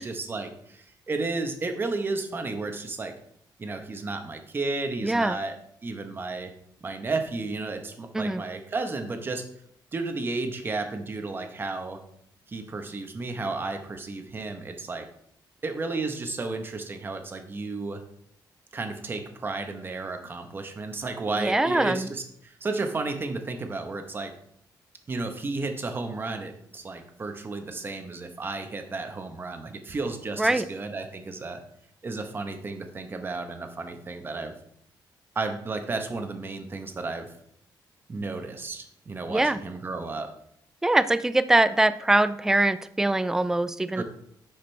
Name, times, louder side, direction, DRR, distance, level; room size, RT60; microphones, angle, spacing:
voice 1, 0.0-3.2 3.6-5.6 5.8-6.5 6.8-9.5 9.9-12.0 12.5-15.1 15.6-18.0 18.7-24.3 25.1-31.6 32.0-34.5 35.3-37.3 38.1-40.4 44.0-44.1, right 3 dB, 30° right, 6 dB, 1.0 m, -33 dB
voice 2, 5.0-5.4 8.1-8.4 21.4-22.1 30.4-30.7 39.3-39.6 40.8-44.0, right 2 dB, 5° right, 14 dB, 0.3 m, -23 dB
10.5 x 5.1 x 3.3 m, 0.69 s
cardioid pair, 140°, 8 cm